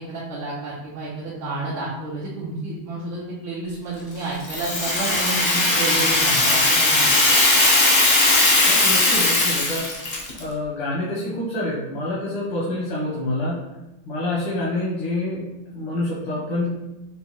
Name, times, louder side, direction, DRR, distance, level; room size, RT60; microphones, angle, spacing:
voice 1, 0.0-7.1, right 2 dB, 75° right, -7 dB, 1.5 m, -30 dB
Rattle (instrument), 4.4-10.4, left 2 dB, 65° left, 0.5 m, -18 dB
voice 2, 8.7-9.9 10.4-13.6 14.1-16.7, left 1 dB, 85° left, -7 dB, 1.8 m, -27 dB
5.9 x 2.2 x 2.8 m, 0.99 s
omnidirectional pair, 2.2 m